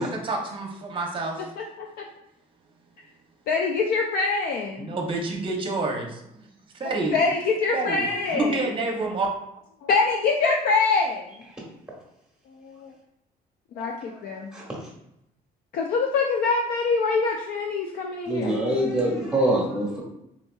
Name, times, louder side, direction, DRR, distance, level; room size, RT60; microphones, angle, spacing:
voice 1, 0.0-1.5 4.8-6.5 6.8-7.2 7.7-8.1 8.3-9.3, right 2 dB, 30° right, 1 dB, 0.8 m, -28 dB
voice 2, 1.6-2.1 3.5-4.9 7.1-8.6 9.8-11.4 12.6-12.9 13.7-14.5 15.7-19.1, left 4 dB, 60° left, 1 dB, 0.4 m, -25 dB
voice 3, 18.2-20.0, right 1 dB, 5° right, -3 dB, 1.3 m, -24 dB
4.0 x 2.7 x 2.3 m, 0.82 s
cardioid pair, 110°, 17 cm